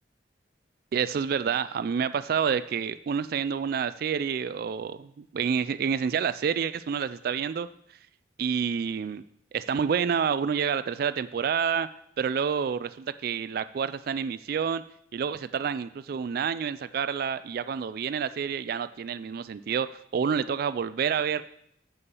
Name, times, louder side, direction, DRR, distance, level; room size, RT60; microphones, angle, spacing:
voice 1, 0.9-7.7 8.4-9.2 9.5-11.9 12.2-14.8 15.1-21.4, right 7 dB, 55° right, 14 dB, 0.3 m, -28 dB
7.0 x 6.9 x 6.9 m, 0.72 s
head